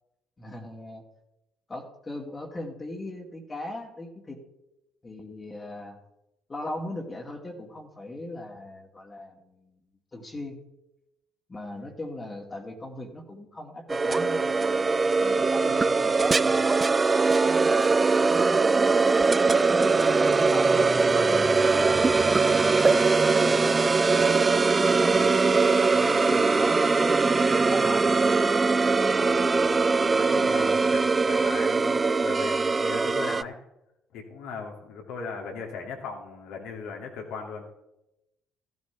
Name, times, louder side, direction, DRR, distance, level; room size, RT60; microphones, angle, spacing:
voice 1, 0.4-1.0 1.7-4.4 5.0-6.0 6.5-9.8 10.1-10.6 11.5-18.9 19.7-28.2, left 1 dB, 25° left, 1 dB, 2.4 m, -39 dB
sound 1, 13.9-33.4, right 4 dB, 30° right, 0.4 m, -22 dB
voice 2, 30.0-33.6 34.1-37.6, left 5 dB, 70° left, 1 dB, 2.6 m, -38 dB
14.5 x 13.5 x 3.5 m, 0.90 s
hypercardioid pair, 50°, 0 cm